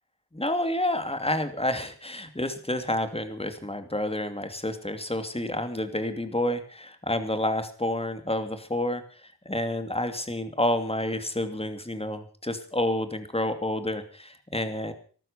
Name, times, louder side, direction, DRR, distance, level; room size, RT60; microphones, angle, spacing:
voice 1, 0.3-14.9, left 1 dB, 15° left, 8 dB, 2.6 m, -29 dB
14.5 x 12.0 x 6.8 m, 0.42 s
cardioid pair, 60°, 38 cm